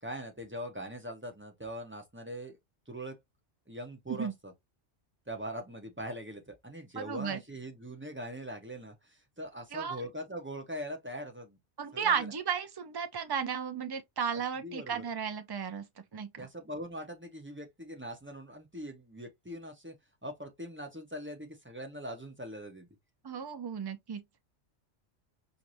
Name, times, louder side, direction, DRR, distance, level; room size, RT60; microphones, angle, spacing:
voice 1, 0.0-2.6 2.9-3.1 3.7-4.5 5.3-11.6 11.9-12.3 14.6-15.0 16.4-19.9 20.2-22.9, equal, 10° right, 0.7 m, -42 dB
voice 2, 7.0-7.4 9.7-10.0 11.8-15.8 16.1-16.5 23.2-24.2, right 7 dB, 40° right, 0.3 m, -34 dB
4.6 x 2.6 x 2.6 m
omnidirectional pair, 1.2 m